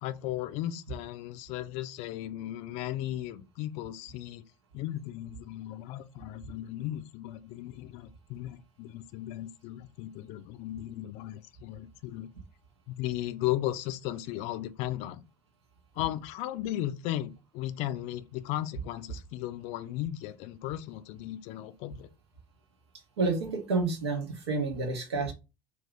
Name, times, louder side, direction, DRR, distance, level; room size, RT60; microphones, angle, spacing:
voice 1, 0.0-4.4 4.7-12.3 12.9-15.2 15.9-22.1, left 14 dB, 50° left, 0.4 m, -36 dB
voice 2, 23.2-25.3, right 3 dB, 75° right, 0.8 m, -29 dB
2.7 x 2.4 x 3.4 m
figure-of-eight pair, 70°, 14 cm